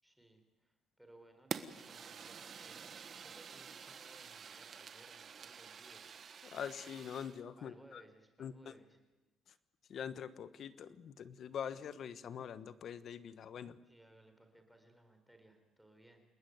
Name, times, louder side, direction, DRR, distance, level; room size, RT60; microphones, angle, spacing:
voice 1, 0.0-6.1 7.6-9.0 13.8-16.2, right 1 dB, ahead, 6 dB, 4.2 m, -63 dB
Fire, 1.5-7.4, right 6 dB, 40° right, 1.4 m, -48 dB
voice 2, 6.4-8.0 8.4-8.7 9.9-13.8, left 8 dB, 50° left, 14 dB, 1.3 m, -44 dB
29.5 x 20.5 x 9.5 m, 1.1 s
cardioid pair, 155°, 0 cm